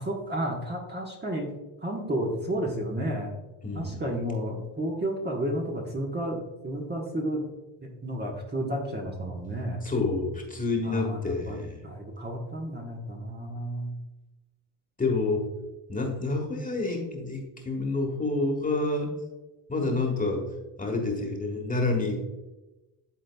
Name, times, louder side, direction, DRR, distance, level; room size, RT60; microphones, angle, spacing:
voice 1, 0.0-1.5 1.8-3.3 3.7-6.4 6.6-7.4 8.0-9.8 10.8-11.6 11.8-13.9, right 1 dB, 20° right, -1 dB, 1.2 m, -31 dB
voice 2, 3.6-4.0 9.8-11.8 15.0-15.5 15.9-19.1 19.7-20.4 20.8-22.2, left 3 dB, 15° left, 1 dB, 1.5 m, -28 dB
11.5 x 3.9 x 2.3 m, 1.1 s
supercardioid pair, 80°, 49 cm